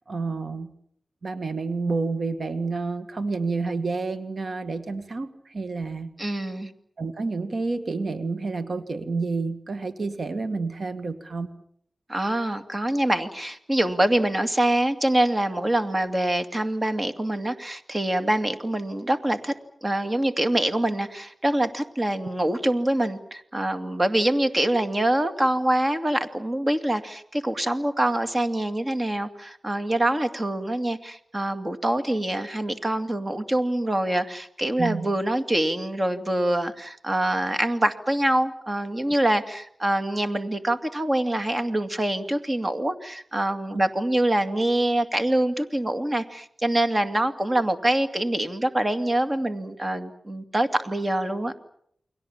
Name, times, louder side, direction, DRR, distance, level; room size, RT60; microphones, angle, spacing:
voice 1, 0.1-0.7 1.2-6.1 7.0-11.5 34.8-35.1 43.7-43.8, right 3 dB, 60° right, 9 dB, 1.9 m, -29 dB
voice 2, 6.2-6.7 12.1-19.5 19.8-51.5, right 1 dB, 25° right, 8 dB, 2.5 m, -25 dB
29.5 x 22.5 x 7.4 m, 0.68 s
wide cardioid pair, 85°, 0 cm